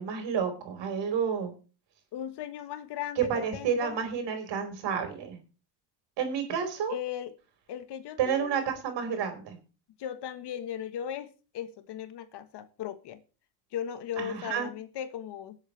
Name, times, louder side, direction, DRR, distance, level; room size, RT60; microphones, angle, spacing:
voice 1, 0.0-1.5 3.2-5.4 6.2-7.0 8.2-9.6 14.2-14.7, right 7 dB, 60° right, 4.6 m, -30 dB
voice 2, 2.1-4.0 6.9-7.3 7.7-8.6 10.0-13.2 13.7-15.6, left 10 dB, 55° left, 1.4 m, -37 dB
21.0 x 8.2 x 3.3 m
supercardioid pair, 90°, 49 cm